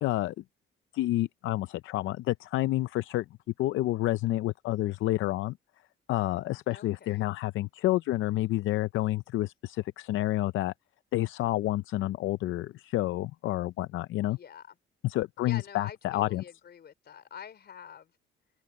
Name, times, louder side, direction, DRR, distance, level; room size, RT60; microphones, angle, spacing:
voice 1, 0.0-0.3 0.9-3.2 3.6-5.6 6.1-10.7 11.1-14.4 15.0-16.4, left 16 dB, 80° left, 0.5 m, -29 dB
voice 2, 6.7-7.3 14.3-14.8 15.5-18.1, left 8 dB, 55° left, 4.2 m, -46 dB
open air
cardioid pair, 90°, 20 cm